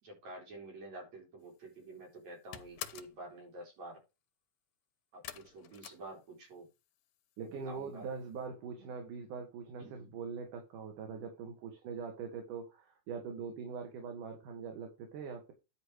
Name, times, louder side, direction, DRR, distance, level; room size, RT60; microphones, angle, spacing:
voice 1, 0.0-4.0 5.1-6.7 7.4-8.1 8.8-8.9 9.8-10.1, right 2 dB, 60° right, 5.3 m, -49 dB
sound 1, 1.5-1.9 2.2-3.2 5.2-6.7 7.0-7.6 7.9-8.0 8.4-8.5, left 11 dB, 90° left, 2.6 m, -47 dB
voice 2, 7.4-15.5, right 5 dB, 90° right, 3.5 m, -42 dB
11.0 x 5.3 x 4.8 m
omnidirectional pair, 3.5 m